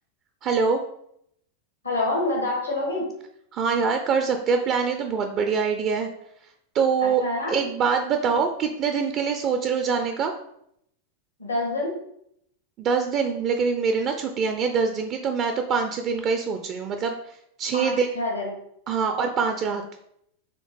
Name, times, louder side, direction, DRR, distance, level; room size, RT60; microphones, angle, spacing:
voice 1, 0.4-0.8 3.5-6.1 6.7-7.2 7.5-10.3 12.8-17.1 17.6-18.1 18.9-19.8, right 5 dB, 35° right, 5 dB, 0.4 m, -24 dB
voice 2, 1.8-3.0 7.0-7.6 11.4-12.0 17.7-18.5, left 2 dB, 80° left, -3 dB, 1.2 m, -27 dB
4.1 x 3.4 x 3.2 m, 0.73 s
figure-of-eight pair, 90°, 0 cm